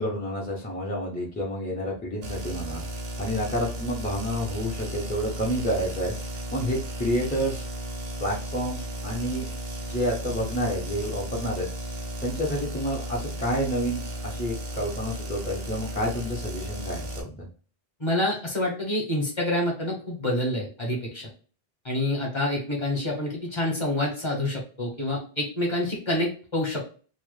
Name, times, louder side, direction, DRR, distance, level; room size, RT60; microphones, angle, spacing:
voice 1, 0.0-2.8 3.2-7.6 8.2-9.5 9.9-11.7 12.2-17.5, equal, 15° left, -4 dB, 0.4 m, -29 dB
sound 1, 2.2-17.2, equal, 55° right, 0.5 m, -35 dB
voice 2, 18.0-21.3 21.8-27.0, left 1 dB, 30° left, -1 dB, 0.8 m, -27 dB
2.0 x 2.0 x 3.0 m, 0.38 s
omnidirectional pair, 1.0 m